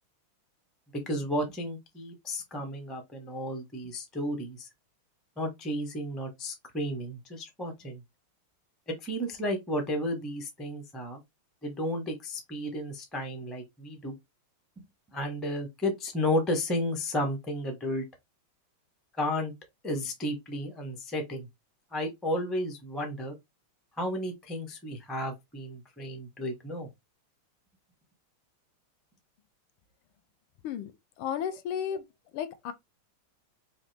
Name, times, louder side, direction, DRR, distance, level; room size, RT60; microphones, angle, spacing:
voice 1, 0.9-4.7 5.4-8.0 8.9-11.2 11.6-14.1 15.1-18.0 19.2-19.5 19.8-21.5 21.9-23.3 24.0-26.9, left 1 dB, ahead, 0.4 m, -33 dB
voice 2, 31.2-32.0 32.3-32.7, left 8 dB, 80° left, 1.4 m, -33 dB
4.1 x 2.8 x 3.3 m
omnidirectional pair, 2.4 m